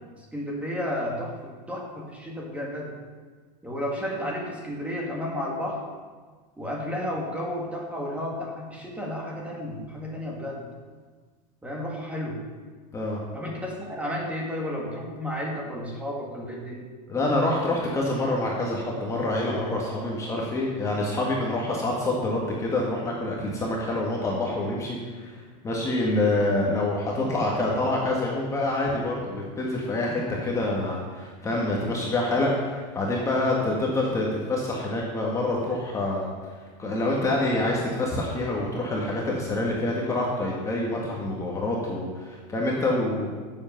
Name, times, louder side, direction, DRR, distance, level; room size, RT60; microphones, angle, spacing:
voice 1, 0.2-3.0 3.6-5.8 6.6-10.7 11.6-12.4 13.3-16.9, left 1 dB, 5° right, -2 dB, 2.0 m, -32 dB
voice 2, 17.1-25.3 25.6-36.3 36.8-43.3, left 2 dB, 15° left, -3 dB, 1.7 m, -26 dB
15.0 x 7.7 x 5.8 m, 1.5 s
supercardioid pair, 165°, 21 cm